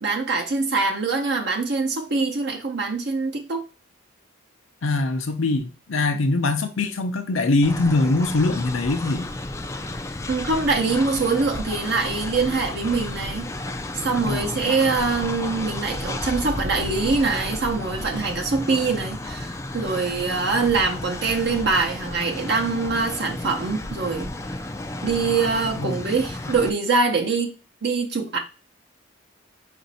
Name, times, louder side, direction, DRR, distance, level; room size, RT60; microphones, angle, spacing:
voice 1, 0.0-3.6 5.4-5.6 6.1-6.3 10.3-13.5 13.9-24.3 25.0-27.5 27.8-28.4, right 4 dB, 55° right, 0.7 m, -24 dB
voice 2, 4.8-9.3 14.2-14.7 25.8-26.0, left 2 dB, 80° left, 0.6 m, -23 dB
Train, 7.6-26.7, left 2 dB, 15° left, 0.3 m, -32 dB
5.1 x 2.6 x 4.0 m
head